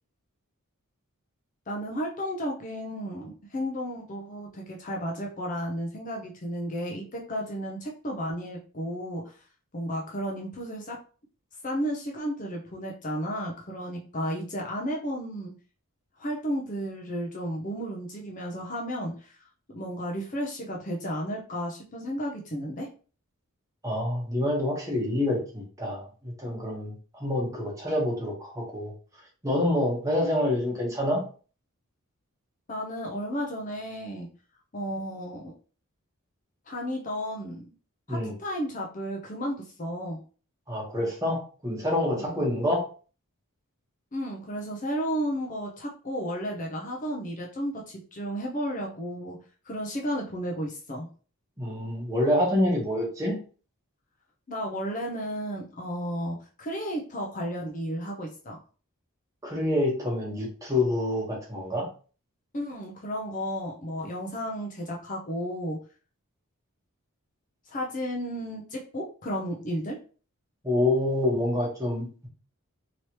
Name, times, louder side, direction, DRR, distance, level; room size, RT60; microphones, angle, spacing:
voice 1, 1.7-9.4 9.7-11.0 11.6-15.5 16.2-19.4 19.7-22.9 32.7-34.3 34.7-35.5 36.7-37.7 38.1-40.2 42.1-42.3 44.1-49.4 49.6-51.1 54.5-58.6 62.5-65.8 67.7-70.0, equal, 35° left, -1 dB, 0.6 m, -33 dB
voice 2, 23.8-28.9 29.4-31.2 38.1-38.3 40.7-42.8 51.6-53.4 59.4-61.9 70.6-72.3, left 1 dB, 15° right, -3 dB, 1.1 m, -27 dB
3.2 x 2.9 x 2.9 m, 0.38 s
head